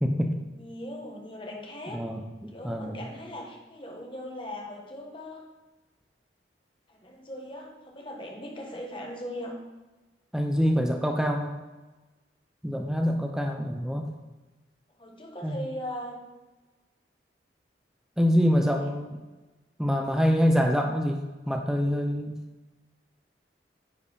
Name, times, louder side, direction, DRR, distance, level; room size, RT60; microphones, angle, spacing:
voice 1, 0.0-0.4 1.9-3.1 10.3-11.5 12.6-14.0 15.4-15.6 18.2-19.2 19.8-22.4, equal, 5° right, 3 dB, 0.6 m, -25 dB
voice 2, 0.6-2.0 2.5-5.5 6.9-9.6 15.0-16.2 18.6-18.9, equal, 25° left, 0 dB, 1.4 m, -39 dB
9.8 x 4.6 x 5.3 m, 1.2 s
head